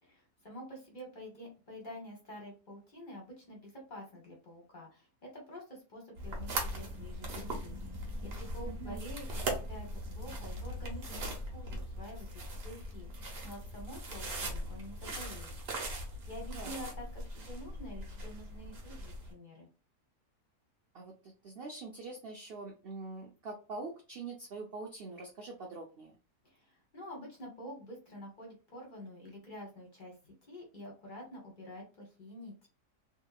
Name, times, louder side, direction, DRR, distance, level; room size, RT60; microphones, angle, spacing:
voice 1, 0.0-7.7 8.2-15.5 16.2-19.7 26.4-32.5, equal, 40° left, -1 dB, 0.8 m, -48 dB
sound 1, 6.1-19.3, right 1 dB, 50° right, 0.8 m, -40 dB
voice 2, 8.7-9.0 16.5-16.7 20.9-26.2, right 3 dB, 85° right, 0 dB, 0.5 m, -44 dB
2.8 x 2.2 x 2.2 m, 0.33 s
omnidirectional pair, 1.6 m